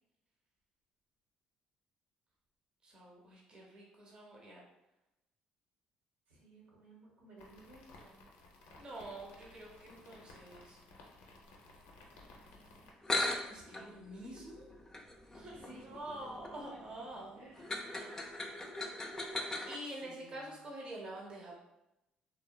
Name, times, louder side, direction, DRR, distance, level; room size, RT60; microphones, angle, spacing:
voice 1, 2.8-4.6 8.8-10.8 13.4-14.6 15.3-17.4 17.8-18.2 19.7-21.6, right 1 dB, 35° right, -3 dB, 0.7 m, -47 dB
voice 2, 6.3-8.2 15.5-15.8 16.7-17.0 17.4-18.1 19.9-20.6, right 1 dB, 80° right, -3 dB, 0.9 m, -58 dB
sound 1, 7.4-12.9, left 2 dB, 90° left, 0.5 m, -57 dB
sound 2, 12.7-12.8 13.0-19.8, left 2 dB, 20° left, 0.4 m, -40 dB
2.8 x 2.2 x 2.2 m, 0.90 s
cardioid pair, 85°, 3 cm